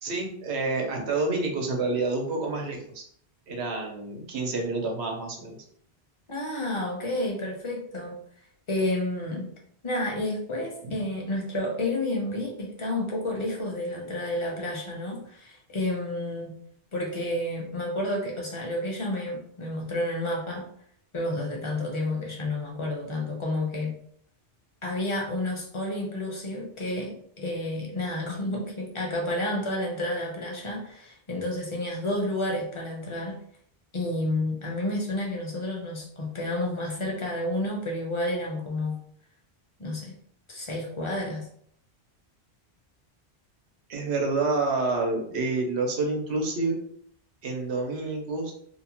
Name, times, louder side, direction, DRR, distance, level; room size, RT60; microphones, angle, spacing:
voice 1, 0.0-3.0 3.5-5.6 10.8-11.0 43.9-46.8 47.4-48.5, right 3 dB, 90° right, 1 dB, 1.0 m, -28 dB
voice 2, 6.3-8.2 8.7-9.5 9.8-16.5 16.9-20.6 21.1-23.9 24.8-27.1 27.4-33.4 33.9-39.0 39.8-40.1 40.5-41.5, left 1 dB, 35° left, -1 dB, 0.6 m, -30 dB
2.8 x 2.1 x 2.8 m, 0.65 s
omnidirectional pair, 1.1 m